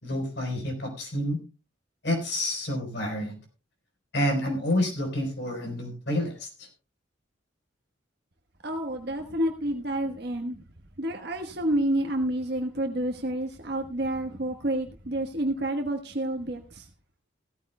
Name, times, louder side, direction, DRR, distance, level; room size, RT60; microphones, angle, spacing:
voice 1, 0.0-1.4 2.0-3.4 4.1-6.7, left 1 dB, 60° left, 3 dB, 3.9 m, -29 dB
voice 2, 8.6-10.6 11.0-16.9, right 1 dB, 55° right, 3 dB, 1.3 m, -29 dB
16.5 x 14.0 x 2.2 m, 0.31 s
head